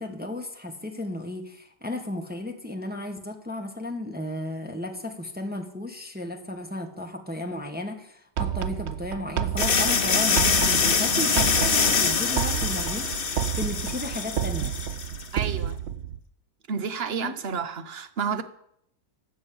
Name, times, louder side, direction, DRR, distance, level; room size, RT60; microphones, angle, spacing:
voice 1, 0.0-14.7 17.2-17.3, left 1 dB, 5° right, 1.2 m, -34 dB
sound 1, 8.4-16.2, right 10 dB, 75° right, 0.6 m, -30 dB
sound 2, 9.6-15.3, left 5 dB, 40° left, 1.0 m, -24 dB
voice 2, 15.3-15.8 16.7-18.4, right 6 dB, 45° right, 0.9 m, -30 dB
14.0 x 6.4 x 8.7 m
omnidirectional pair, 1.9 m